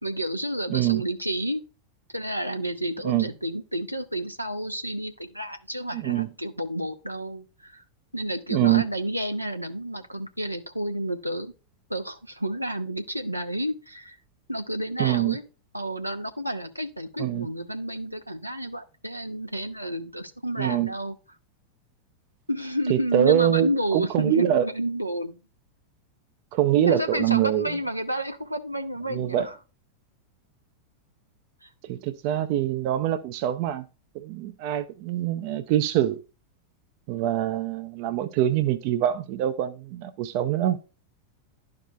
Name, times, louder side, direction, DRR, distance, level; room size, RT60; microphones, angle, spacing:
voice 1, 0.0-1.6 2.1-7.8 8.1-11.5 11.9-14.2 14.5-15.4 15.7-21.2 22.5-25.4 26.9-29.6 31.6-31.7, right 1 dB, 90° right, 0.8 m, -30 dB
voice 2, 0.7-1.0 3.0-3.3 5.9-6.3 8.5-8.8 15.0-15.4 17.2-17.5 20.6-20.9 22.9-24.7 26.5-27.8 29.1-29.5 31.8-33.8 34.1-36.2 37.1-40.8, right 12 dB, 45° right, 0.6 m, -24 dB
12.0 x 4.8 x 2.4 m
figure-of-eight pair, 90°, 0 cm